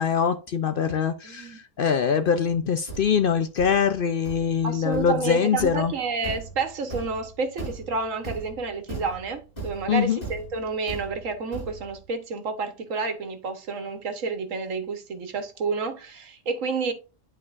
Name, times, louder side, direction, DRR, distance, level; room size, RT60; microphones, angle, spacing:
voice 1, 0.0-5.9 9.9-10.2, left 7 dB, 60° left, 0.6 m, -23 dB
voice 2, 1.2-1.6 4.6-16.9, right 4 dB, 85° right, 1.5 m, -30 dB
Thump thud, 2.5-12.1, right 3 dB, 30° left, 3.5 m, -39 dB
11.0 x 4.4 x 2.4 m
omnidirectional pair, 1.3 m